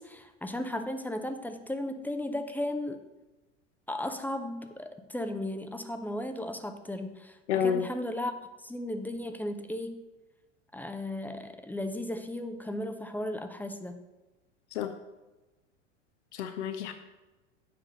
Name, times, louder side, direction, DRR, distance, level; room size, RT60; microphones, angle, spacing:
voice 1, 0.0-3.0 3.9-8.3 8.6-9.9 10.7-14.0, left 1 dB, 5° left, 7 dB, 0.6 m, -35 dB
voice 2, 7.5-7.8 14.7-14.9 16.3-16.9, left 7 dB, 65° left, 8 dB, 0.8 m, -29 dB
7.7 x 4.9 x 6.4 m, 1.1 s
figure-of-eight pair, 80°, 36 cm